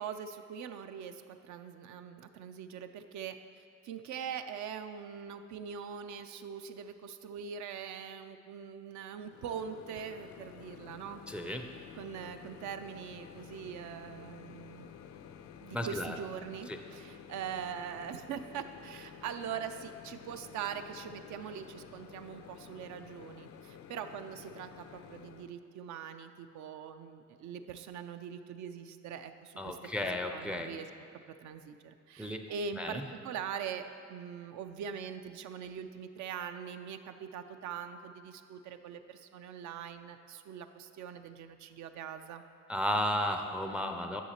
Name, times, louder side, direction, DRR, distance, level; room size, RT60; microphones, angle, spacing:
voice 1, 0.0-11.2 11.9-14.9 15.6-29.8 30.3-30.9 31.1-42.4, right 7 dB, 70° right, 8 dB, 0.4 m, -42 dB
Microwave oven, 9.2-25.5, left 8 dB, 70° left, 0.4 m, -51 dB
voice 2, 11.3-11.7 15.7-16.1 16.7-16.8 29.6-30.7 32.2-32.5 32.7-33.1 42.7-44.2, left 1 dB, 5° right, 5 dB, 0.4 m, -34 dB
9.9 x 6.4 x 2.9 m, 2.3 s
cardioid pair, 90°, 30 cm